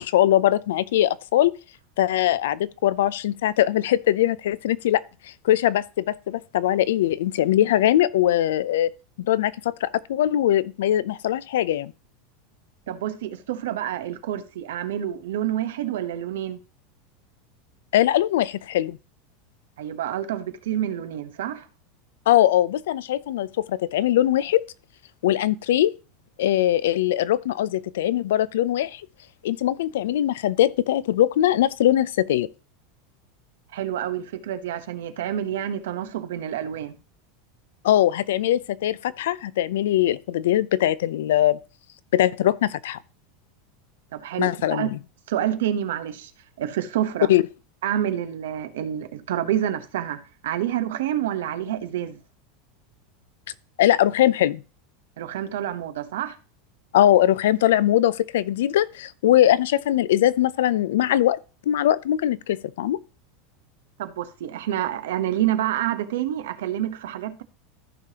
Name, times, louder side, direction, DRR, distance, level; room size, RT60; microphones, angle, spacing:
voice 1, 0.0-1.5 2.0-8.9 9.2-11.9 17.9-19.0 22.3-24.6 25.2-25.9 26.4-29.0 29.4-32.5 37.8-41.6 42.1-43.0 44.4-45.0 47.3-47.4 53.8-54.6 56.9-61.4 61.7-63.0, left 12 dB, 85° left, 0.5 m, -21 dB
voice 2, 12.9-16.6 19.8-21.7 33.7-37.0 44.1-44.9 45.3-46.3 46.6-47.3 47.8-52.2 55.2-56.4 64.0-67.4, right 11 dB, 90° right, 1.0 m, -28 dB
14.5 x 5.0 x 2.9 m
supercardioid pair, 165°, 0 cm